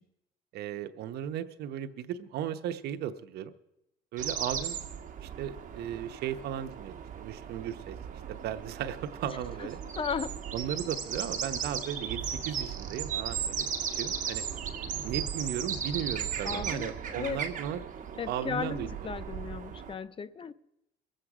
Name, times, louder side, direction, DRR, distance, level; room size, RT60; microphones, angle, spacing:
voice 1, 0.5-3.5 4.1-4.8 5.2-8.0 8.4-9.8 10.5-13.7 14.0-14.4 15.0-17.8 18.3-19.1, right 10 dB, 75° right, 9 dB, 0.9 m, -36 dB
sound 1, 4.2-19.9, right 8 dB, 50° right, 1.6 m, -36 dB
voice 2, 10.0-10.3 16.4-17.4 18.2-20.5, left 6 dB, 30° left, 17 dB, 0.6 m, -35 dB
23.0 x 7.8 x 4.9 m, 0.84 s
cardioid pair, 110°, 17 cm